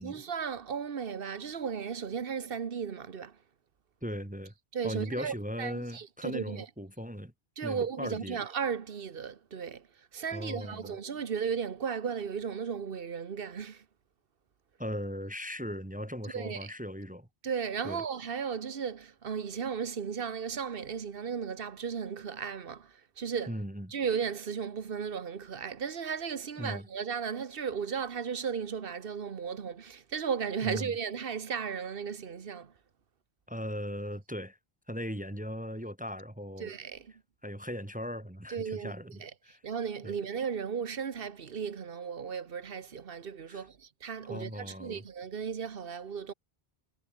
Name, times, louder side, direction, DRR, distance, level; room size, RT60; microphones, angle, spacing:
voice 1, 0.0-3.4 4.7-6.7 7.6-13.8 16.2-16.7 17.4-23.5 23.9-32.7 36.6-37.1 38.5-38.9 39.2-39.3 39.6-46.3, right 6 dB, 65° right, 1.3 m, -35 dB
voice 2, 4.0-4.5 4.8-7.3 7.6-8.4 10.3-10.9 14.8-17.3 17.8-18.0 23.5-23.9 26.6-26.9 30.6-30.9 33.5-34.6 34.9-36.7 37.4-39.6 40.0-40.1 43.5-43.7 44.2-45.0, equal, 10° right, 1.6 m, -38 dB
omnidirectional pair, 1.0 m